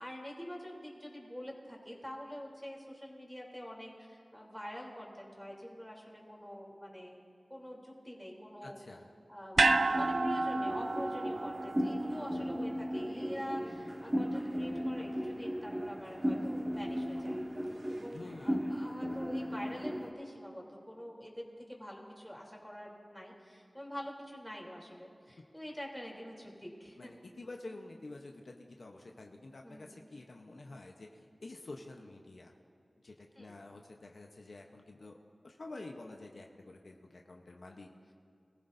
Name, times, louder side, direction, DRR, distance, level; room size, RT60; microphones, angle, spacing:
voice 1, 0.0-7.2 7.5-8.8 9.3-17.4 17.9-27.2 29.6-30.0 33.3-33.6, equal, 5° left, -2 dB, 3.3 m, -46 dB
voice 2, 8.6-9.1 18.1-18.9 27.0-32.5 33.0-35.2 35.4-38.1, left 2 dB, 70° left, 2 dB, 0.9 m, -49 dB
sound 1, 9.6-20.1, equal, 25° right, 1.4 m, -36 dB
sound 2, 9.6-13.9 14.2-14.3, right 3 dB, 75° right, 0.4 m, -32 dB
24.0 x 15.0 x 2.7 m, 2.4 s
cardioid pair, 45°, 0 cm